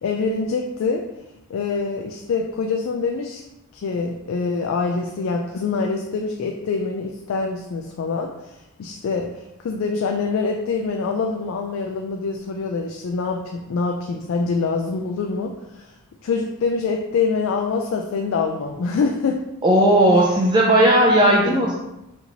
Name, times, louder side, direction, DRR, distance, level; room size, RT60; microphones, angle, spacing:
voice 1, 0.0-1.0 1.5-3.4 3.7-15.9 16.2-19.4 21.2-21.6, left 4 dB, 65° left, 2 dB, 0.3 m, -25 dB
voice 2, 19.6-21.7, right 1 dB, 20° right, -3 dB, 0.3 m, -16 dB
4.3 x 2.6 x 2.8 m, 0.93 s
head